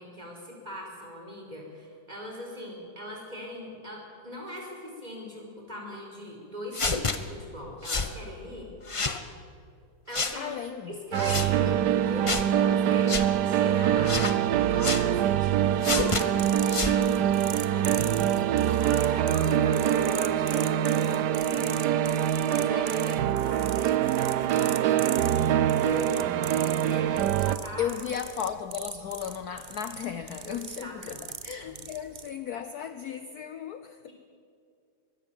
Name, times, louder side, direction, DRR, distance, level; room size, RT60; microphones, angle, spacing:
voice 1, 0.0-8.7 10.1-10.5 10.9-14.2 14.7-17.3 17.7-26.1 26.9-27.9 30.4-31.2 31.6-31.9 34.1-34.2, left 1 dB, 20° right, 0 dB, 5.3 m, -40 dB
sound 1, 6.7-7.2 7.8-8.1 8.9-9.2 10.1-10.4 11.1-11.5 12.3-12.5 13.1-13.3 14.0-14.4 14.8-15.0 15.8-16.2 16.7-17.0, left 3 dB, 25° left, 0.6 m, -28 dB
voice 2, 10.3-10.9 27.8-34.1, left 9 dB, 60° left, 10 dB, 1.1 m, -35 dB
sound 2, 11.1-27.6, right 10 dB, 65° right, 1.2 m, -24 dB
sound 3, 16.1-32.3, right 6 dB, 90° right, 0.4 m, -41 dB
24.0 x 21.5 x 7.2 m, 2.4 s
omnidirectional pair, 2.1 m